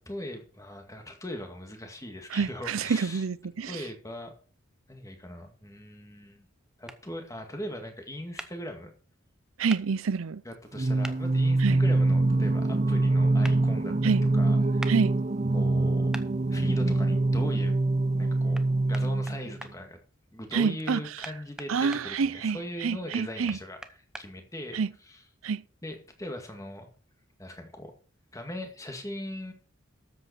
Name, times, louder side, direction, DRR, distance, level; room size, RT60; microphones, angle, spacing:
voice 1, 0.0-3.2 3.7-4.3 4.9-6.5 6.8-8.9 10.5-14.0 14.4-14.9 15.5-16.2 16.5-17.7 18.2-18.6 18.9-20.0 20.3-23.8 24.2-24.8 25.1-25.2 25.8-26.9 27.4-27.9 28.3-29.5, left 1 dB, 15° left, 2.0 m, -39 dB
voice 2, 2.3-3.9 9.6-10.4 11.6-11.8 14.0-14.2 14.9-15.2 20.5-21.3 21.7-23.6 24.7-24.9 25.4-25.6, right 5 dB, 85° right, 0.5 m, -28 dB
sound 1, 6.9-7.0 8.4-8.5 9.7-9.8 11.0-11.2 13.4-13.6 14.8-15.0 16.1-16.3 18.5-18.7 18.9-19.7 20.9-22.0 23.1-24.3, right 1 dB, 5° right, 0.8 m, -40 dB
Singing, 10.7-19.6, right 2 dB, 35° right, 0.7 m, -24 dB
13.0 x 8.0 x 4.4 m
head